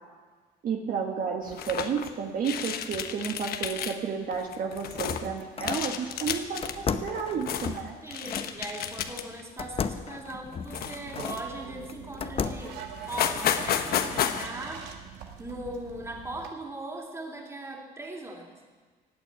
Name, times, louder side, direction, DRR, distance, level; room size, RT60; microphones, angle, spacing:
voice 1, 0.6-7.9, right 6 dB, 55° right, 2 dB, 1.6 m, -32 dB
sound 1, 1.5-2.1 2.4-3.9 4.3-5.2 5.6-6.7 7.2-7.8 8.1-9.4 9.8-10.0 10.7-11.6 12.2-12.3 12.6-12.7 13.0-14.5, left 9 dB, 65° left, 1.1 m, -32 dB
sound 2, 4.5-5.9 6.6-8.5 9.6-11.4 11.9-12.8, left 6 dB, 35° left, 0.8 m, -34 dB
voice 2, 8.0-14.9 15.4-18.5, right 1 dB, 15° right, 0 dB, 3.1 m, -39 dB
sound 3, 10.7-16.5, right 7 dB, 90° right, 1.7 m, -43 dB
16.5 x 8.6 x 9.6 m, 1.4 s
cardioid pair, 110°, 17 cm